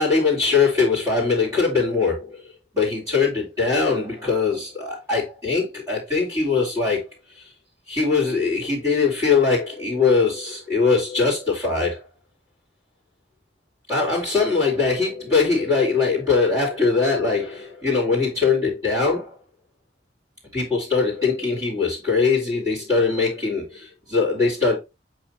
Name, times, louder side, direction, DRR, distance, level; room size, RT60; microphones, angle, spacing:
voice 1, 0.0-2.3 2.7-7.0 7.9-12.0 13.9-19.3 20.5-24.7, left 4 dB, 20° right, 3.0 m, -21 dB
7.9 x 3.3 x 4.3 m
head